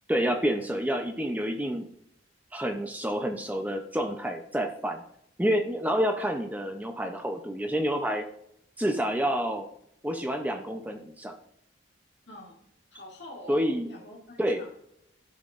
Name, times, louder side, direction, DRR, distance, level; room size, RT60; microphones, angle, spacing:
voice 1, 0.1-1.8 2.5-5.0 5.4-8.3 8.8-9.7 10.0-11.3 13.5-13.9 14.4-14.6, equal, 10° right, 5 dB, 0.5 m, -28 dB
voice 2, 12.3-12.6 12.9-14.8, left 1 dB, 60° left, -1 dB, 2.0 m, -47 dB
13.0 x 5.8 x 2.5 m, 0.75 s
head